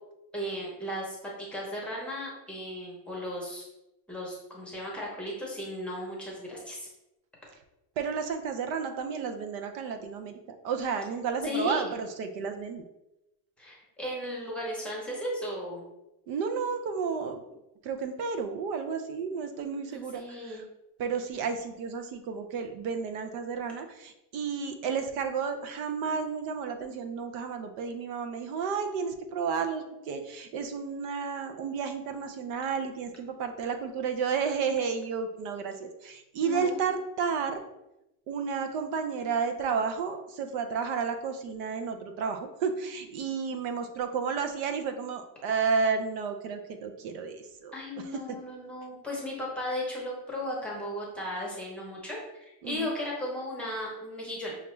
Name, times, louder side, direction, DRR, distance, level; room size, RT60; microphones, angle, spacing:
voice 1, 0.3-3.6 4.1-6.9 11.4-11.9 13.6-15.8 19.9-20.6 36.4-36.9 47.7-54.6, left 1 dB, ahead, -5 dB, 0.6 m, -36 dB
voice 2, 8.0-12.8 16.3-17.4 17.8-20.6 21.0-37.6 38.3-47.7 48.1-48.2 52.6-52.9, right 6 dB, 85° right, 7 dB, 0.7 m, -32 dB
5.7 x 2.4 x 3.1 m, 0.92 s
cardioid pair, 170°, 48 cm